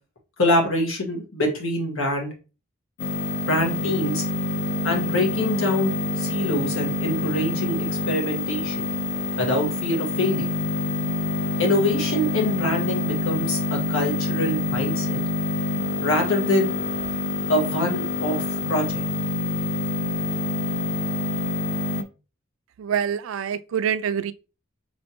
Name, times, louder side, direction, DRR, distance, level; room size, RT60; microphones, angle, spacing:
voice 1, 0.4-2.3 3.4-4.2 4.8-7.8 8.1-8.8 9.4-10.5 11.6-13.6 13.9-15.2 16.0-16.7 17.5-19.0, left 1 dB, 85° left, 1.4 m, -24 dB
sound 1, 3.0-22.0, left 2 dB, 60° left, 0.5 m, -26 dB
voice 2, 22.8-24.3, right 8 dB, 80° right, 0.3 m, -25 dB
4.4 x 3.2 x 2.9 m
head